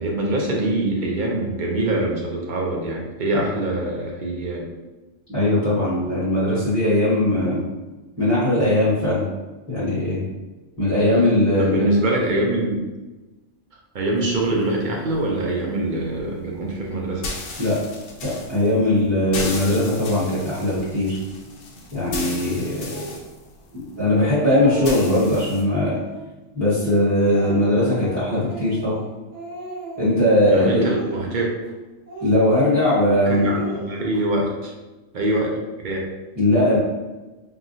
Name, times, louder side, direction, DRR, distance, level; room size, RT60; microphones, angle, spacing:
voice 1, 0.0-4.7 11.6-12.8 13.9-17.3 30.4-31.5 33.3-34.7 35.1-35.5 35.8-36.0, right 1 dB, 50° right, -1 dB, 0.6 m, -24 dB
voice 2, 5.3-7.6 8.2-9.2 9.7-10.2 10.8-11.9 17.6-17.8 18.2-21.2 21.9-23.1 23.7-26.0 26.5-29.0 30.0-30.8 32.2-33.5 36.4-36.8, left 1 dB, 10° right, -10 dB, 1.1 m, -20 dB
sound 1, 14.2-25.6, left 3 dB, 75° left, 1.0 m, -37 dB
Speech, 22.9-23.2 23.9-24.0 24.4-25.3 25.6-26.3 26.8-29.1 29.3-30.3 30.8-31.7 32.1-32.7 33.1-34.2, right 3 dB, 85° right, 1.4 m, -36 dB
3.6 x 2.3 x 2.6 m, 1.1 s
omnidirectional pair, 1.3 m